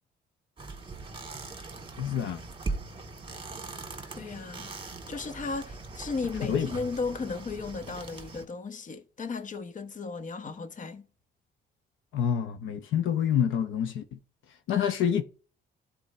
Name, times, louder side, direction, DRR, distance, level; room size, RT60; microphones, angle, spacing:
sound 1, 0.6-8.5, right 3 dB, 25° right, 1.7 m, -40 dB
voice 1, 2.0-2.4 6.5-6.7 12.1-14.2 14.7-15.2, left 8 dB, 80° left, 0.8 m, -27 dB
voice 2, 4.1-4.7 5.1-11.1, left 4 dB, 40° left, 1.0 m, -35 dB
13.0 x 4.4 x 3.2 m
cardioid pair, 90°, 20 cm